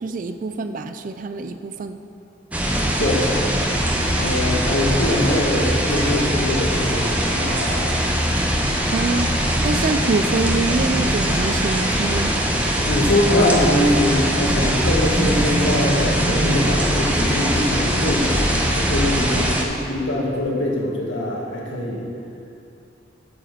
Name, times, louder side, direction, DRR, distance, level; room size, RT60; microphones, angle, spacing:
voice 1, 0.0-2.0 8.9-9.3 9.6-12.3, right 3 dB, 45° right, 9 dB, 0.4 m, -25 dB
sound 1, 2.5-19.6, equal, 5° right, 0.9 m, -21 dB
voice 2, 3.0-3.3 4.2-7.9 12.8-22.1, left 1 dB, 65° left, -3 dB, 1.8 m, -23 dB
8.6 x 6.4 x 6.6 m, 2.6 s
head